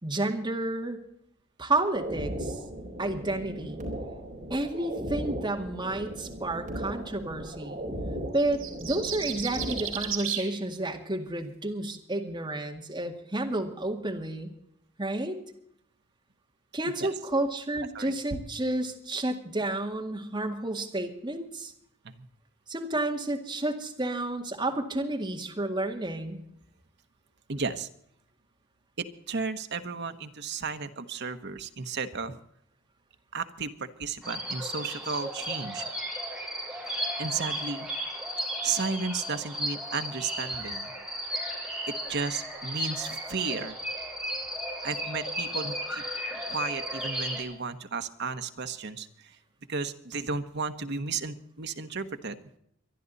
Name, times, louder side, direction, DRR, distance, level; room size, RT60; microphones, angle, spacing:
voice 1, 0.0-1.0 1.6-2.6 3.0-3.8 4.5-7.8 8.3-14.5 15.0-15.4 16.7-21.7 22.7-26.4, right 2 dB, 20° right, 3 dB, 2.0 m, -31 dB
sound 1, 1.9-10.1, right 1 dB, 40° right, 4.2 m, -37 dB
sound 2, 8.4-10.5, right 9 dB, 75° right, 4.2 m, -33 dB
voice 2, 17.9-18.4 22.0-22.2 27.5-27.9 29.0-32.4 33.3-35.9 37.2-37.9 38.6-40.9 41.9-43.8 44.8-46.0 46.5-49.4 49.7-52.4, right 4 dB, 60° right, 8 dB, 1.1 m, -34 dB
sound 3, 34.2-47.4, equal, 5° right, 4.0 m, -34 dB
25.0 x 11.0 x 4.1 m, 0.72 s
head